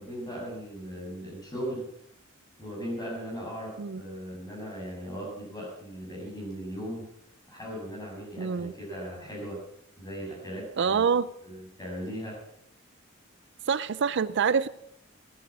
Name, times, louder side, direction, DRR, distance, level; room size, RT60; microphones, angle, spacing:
voice 1, 0.0-1.9 2.6-7.1 7.5-9.6 10.0-11.0 11.4-12.4, equal, 20° left, -2 dB, 7.5 m, -38 dB
voice 2, 8.4-8.7 10.8-11.3 13.7-14.7, right 6 dB, 60° right, 16 dB, 0.5 m, -25 dB
14.0 x 13.5 x 6.2 m, 0.72 s
head